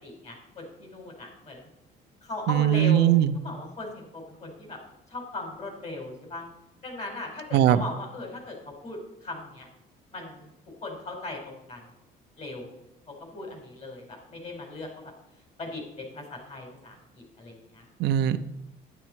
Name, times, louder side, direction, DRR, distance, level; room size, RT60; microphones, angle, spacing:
voice 1, 0.0-1.7 2.2-4.8 5.1-6.4 6.8-8.5 8.8-9.7 10.1-10.5 10.8-11.8 12.4-12.7 13.3-15.1 15.6-17.0 17.4-17.8, left 2 dB, 40° left, 1 dB, 5.0 m, -38 dB
voice 2, 2.5-3.4 7.5-7.8 18.0-18.4, right 11 dB, 80° right, 9 dB, 0.7 m, -20 dB
11.0 x 10.0 x 4.6 m, 0.87 s
cardioid pair, 110°, 17 cm